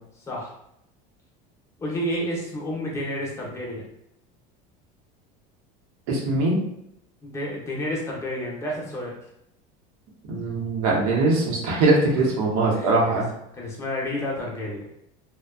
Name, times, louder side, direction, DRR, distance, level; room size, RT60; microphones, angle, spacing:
voice 1, 1.8-3.8 7.2-9.1 12.2-12.3 12.7-13.2 13.5-14.8, left 1 dB, 15° left, -3 dB, 0.6 m, -30 dB
voice 2, 6.1-6.6 10.3-13.3, right 2 dB, 80° right, -2 dB, 0.8 m, -21 dB
2.5 x 2.2 x 2.3 m, 0.78 s
cardioid pair, 145°, 18 cm